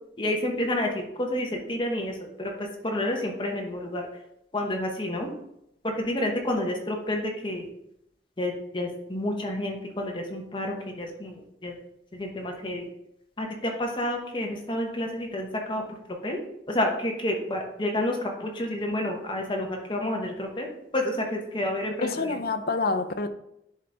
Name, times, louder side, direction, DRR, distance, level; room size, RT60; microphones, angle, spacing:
voice 1, 0.2-4.0 4.5-5.3 5.8-7.7 8.4-11.4 11.6-11.7 12.1-12.8 13.4-15.8 16.2-16.4 16.7-20.7 20.9-22.4, left 1 dB, 25° left, 1 dB, 0.9 m, -29 dB
voice 2, 22.0-23.3, left 3 dB, 55° left, 10 dB, 0.5 m, -27 dB
10.5 x 3.9 x 3.4 m, 0.80 s
head